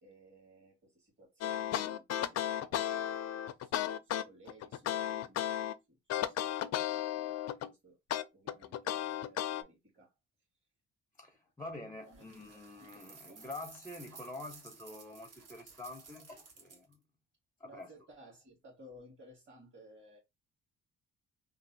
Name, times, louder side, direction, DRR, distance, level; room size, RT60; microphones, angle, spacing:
voice 1, 0.0-8.0 8.3-10.1 12.0-12.3 12.8-13.0 13.3-13.5 17.6-20.2, right 1 dB, 35° right, 1.7 m, -59 dB
sound 1, 1.4-5.7 6.1-7.7 8.1-9.6, left 11 dB, 60° left, 0.4 m, -34 dB
voice 2, 11.2-17.0 17.6-17.9, left 2 dB, 10° left, 0.5 m, -47 dB
sound 2, 12.1-16.9, right 4 dB, 55° right, 1.2 m, -55 dB
3.1 x 2.4 x 2.6 m
cardioid pair, 90°, 30 cm